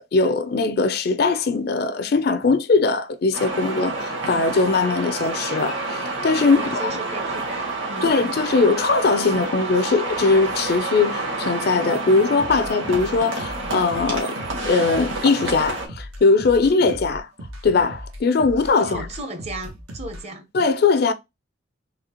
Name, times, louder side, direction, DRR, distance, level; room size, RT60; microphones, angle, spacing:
voice 1, 0.1-6.6 8.0-14.4 14.6-17.3 17.6-19.1 20.5-21.1, left 4 dB, 50° left, 0.4 m, -20 dB
sound 1, 3.3-15.9, right 3 dB, 65° right, 1.6 m, -29 dB
voice 2, 6.4-8.1 18.8-20.5, right 2 dB, 30° right, 0.7 m, -35 dB
sound 2, 12.4-20.2, equal, 90° right, 1.1 m, -38 dB
4.1 x 2.8 x 2.8 m
head